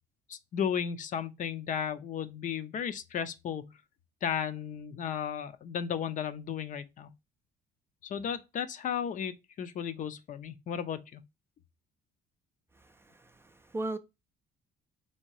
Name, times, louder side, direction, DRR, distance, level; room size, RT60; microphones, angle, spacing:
voice 1, 0.3-3.7 4.2-7.1 8.0-11.2, left 8 dB, 50° left, 0.6 m, -34 dB
voice 2, 13.1-14.0, right 2 dB, 15° right, 0.4 m, -37 dB
3.6 x 2.9 x 4.6 m
cardioid pair, 110°, 17 cm